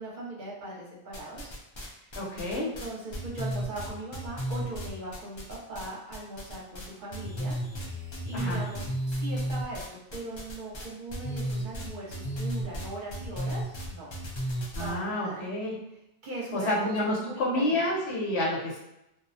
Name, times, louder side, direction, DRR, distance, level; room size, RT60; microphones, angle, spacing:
voice 1, 0.0-1.5 1.8-2.1 2.6-7.5 8.0-14.1 14.8-15.4 16.2-17.8, right 2 dB, 50° right, -5 dB, 0.8 m, -40 dB
sound 1, 1.1-1.9 2.1-5.9 6.1-6.9 7.1-14.9, equal, 45° left, 0.3 m, -33 dB
voice 2, 2.2-2.7 8.3-8.6 14.7-15.8 16.5-18.8, left 1 dB, 90° left, -3 dB, 1.0 m, -29 dB
2.3 x 2.0 x 2.6 m, 0.85 s
omnidirectional pair, 1.1 m